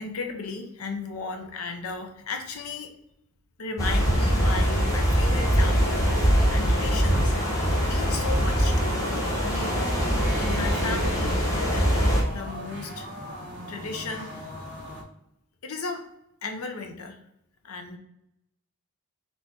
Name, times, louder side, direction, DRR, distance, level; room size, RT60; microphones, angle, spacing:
voice 1, 0.0-2.9 3.6-7.3 7.8-9.0 9.4-10.1 10.4-13.1 13.7-14.5 15.6-16.1 16.4-17.2 17.6-18.0, left 4 dB, 90° left, 5 dB, 0.7 m, -35 dB
sound 1, 3.8-12.2, equal, 15° left, 1.1 m, -23 dB
sound 2, 7.3-15.0, equal, 50° right, 1.2 m, -38 dB
4.0 x 3.0 x 3.5 m, 0.80 s
head